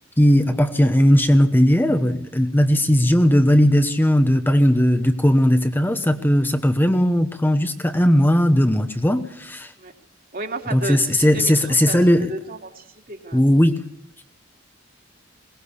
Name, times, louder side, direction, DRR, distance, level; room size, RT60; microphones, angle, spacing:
voice 1, 0.2-9.7 10.7-12.3 13.3-13.8, equal, 10° left, 7 dB, 1.0 m, -17 dB
voice 2, 10.3-13.4, right 2 dB, 45° right, 3 dB, 2.9 m, -33 dB
22.0 x 19.0 x 8.4 m, 0.72 s
head